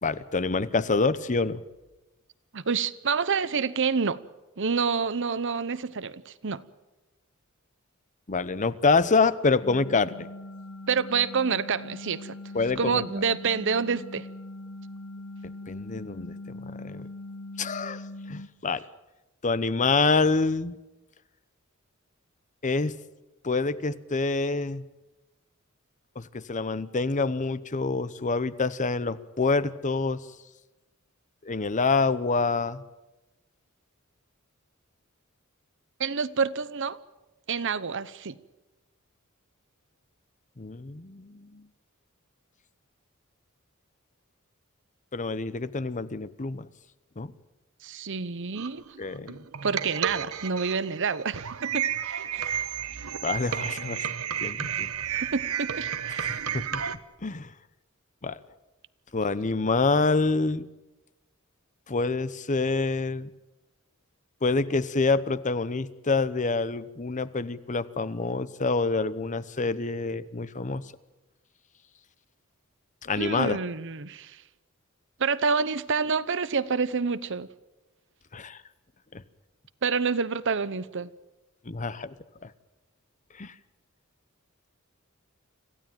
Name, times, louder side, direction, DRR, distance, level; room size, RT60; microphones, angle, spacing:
voice 1, 0.0-1.6 8.3-10.3 12.5-13.0 15.7-17.1 17.6-18.8 19.4-20.8 22.6-22.9 23.4-24.8 26.2-30.2 31.4-32.8 40.6-41.6 45.1-46.7 47.2-47.3 49.0-49.4 53.2-54.1 54.4-54.9 56.1-56.8 57.2-57.5 58.2-58.4 59.1-60.6 61.9-63.3 64.4-70.8 73.0-73.6 78.3-78.6 79.1-79.2 81.7-82.1 82.4-82.5 83.4-83.5, left 3 dB, 35° left, 0.8 m, -27 dB
voice 2, 2.5-4.2 4.6-6.6 10.9-12.3 12.8-14.3 36.0-37.0 37.5-38.4 47.8-48.8 49.6-52.6 55.3-56.3 73.2-74.4 75.2-77.5 79.8-81.1, right 5 dB, 60° right, 0.9 m, -28 dB
sound 1, 9.6-18.5, left 2 dB, 85° left, 1.6 m, -41 dB
sound 2, 48.6-57.0, right 9 dB, 85° right, 1.0 m, -32 dB
26.0 x 15.5 x 9.2 m
head